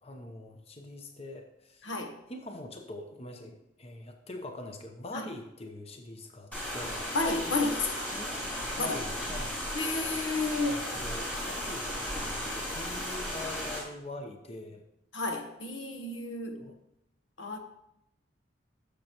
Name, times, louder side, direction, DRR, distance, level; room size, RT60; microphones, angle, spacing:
voice 1, 0.0-1.9 2.3-7.1 8.1-8.3 8.8-9.6 10.7-14.8 16.6-16.7, left 2 dB, 35° left, 0.9 m, -43 dB
voice 2, 1.8-2.1 5.1-5.2 7.1-8.1 8.8-9.0 9.7-10.8 15.1-16.7 17.4-17.6, left 3 dB, 85° left, 1.1 m, -31 dB
sound 1, 6.5-13.8, equal, 10° left, 3.3 m, -35 dB
13.5 x 6.6 x 3.0 m
head